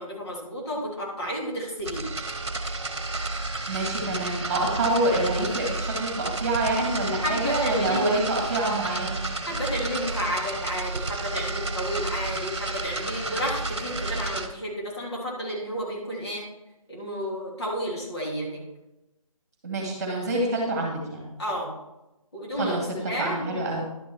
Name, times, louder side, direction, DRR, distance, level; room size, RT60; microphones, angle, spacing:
voice 1, 0.0-2.1 7.2-8.1 9.5-16.5 16.9-18.6 21.4-21.7 22.3-23.6, equal, 50° left, -4 dB, 3.5 m, -32 dB
sound 1, 1.8-14.5, right 2 dB, 50° right, 1.1 m, -31 dB
voice 2, 3.7-9.2 19.6-21.4 22.6-23.9, right 2 dB, 30° right, -1 dB, 2.1 m, -27 dB
11.5 x 6.1 x 4.4 m, 0.95 s
figure-of-eight pair, 155°, 18 cm